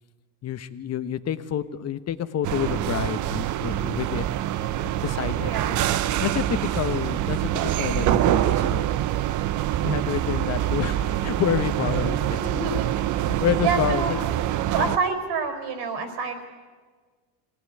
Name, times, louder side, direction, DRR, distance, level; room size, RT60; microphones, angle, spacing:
voice 1, 0.4-4.2 4.8-5.5 6.2-9.0 9.8-12.4 13.2-14.2 14.8-14.9, left 10 dB, 35° left, 11 dB, 1.2 m, -28 dB
sound 1, 2.4-15.0, right 12 dB, 40° right, 0.8 m, -25 dB
voice 2, 5.4-5.8 12.0-13.1 13.6-14.1 14.7-16.5, right 5 dB, 60° right, 8 dB, 4.6 m, -28 dB
22.0 x 18.5 x 9.7 m, 1.5 s
supercardioid pair, 120°, 45 cm